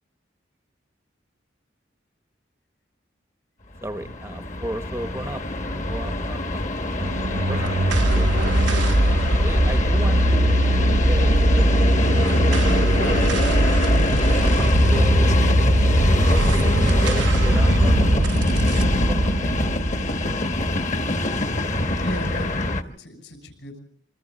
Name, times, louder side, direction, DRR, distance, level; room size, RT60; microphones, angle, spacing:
Train, 3.8-22.8, left 1 dB, 40° left, 1.1 m, -24 dB
voice 1, 3.8-7.2 7.5-8.9 9.4-13.5 14.4-19.7, right 1 dB, 15° right, 8 dB, 0.8 m, -36 dB
sound 1, 7.0-21.6, right 1 dB, 80° right, 0.9 m, -20 dB
voice 2, 21.3-23.8, equal, 75° left, 5 dB, 6.8 m, -37 dB
28.0 x 24.0 x 4.1 m, 0.62 s
head